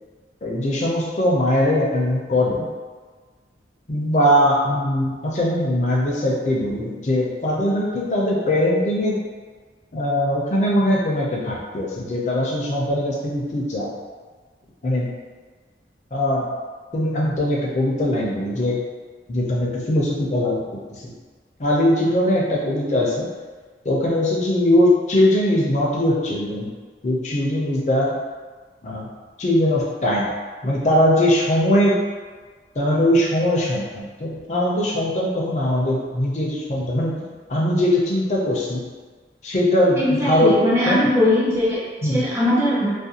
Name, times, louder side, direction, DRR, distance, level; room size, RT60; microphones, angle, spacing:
voice 1, 0.4-2.7 3.9-9.2 9.9-13.9 14.8-15.1 16.1-16.5 16.9-18.8 19.3-20.8 21.6-23.3 23.8-26.7 27.0-28.1 28.8-29.1 29.4-30.3 30.6-32.0 32.8-37.2 37.5-38.8 39.4-40.6 40.9-41.1 42.0-42.2, left 1 dB, 40° left, -4 dB, 0.5 m, -21 dB
voice 2, 40.0-41.8 42.1-42.9, left 1 dB, 15° right, -7 dB, 0.6 m, -20 dB
2.5 x 2.2 x 2.7 m, 1.5 s
head